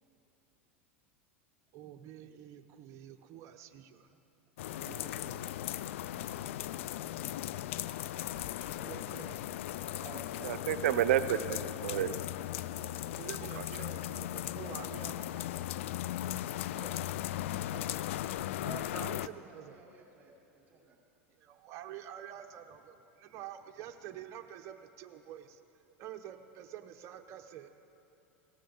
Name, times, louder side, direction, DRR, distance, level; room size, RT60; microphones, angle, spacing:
voice 1, 1.7-4.1 4.8-5.5 8.8-9.4 11.9-12.2 13.1-15.7 18.4-18.5 18.9-19.8 21.4-25.6 26.0-27.7, right 10 dB, 50° right, 6 dB, 0.8 m, -48 dB
sound 1, 4.6-19.3, left 13 dB, 75° left, 0.3 m, -37 dB
voice 2, 4.8-5.5 6.3-7.0 8.5-8.9 10.0-10.5 16.7-16.9 17.7-18.1 18.6-21.0, right 4 dB, 25° right, -3 dB, 4.1 m, -53 dB
voice 3, 10.4-12.1 12.7-13.0 13.6-13.7, right 11 dB, 75° right, 12 dB, 0.5 m, -30 dB
17.5 x 14.0 x 3.9 m, 2.8 s
hypercardioid pair, 100°, 7 cm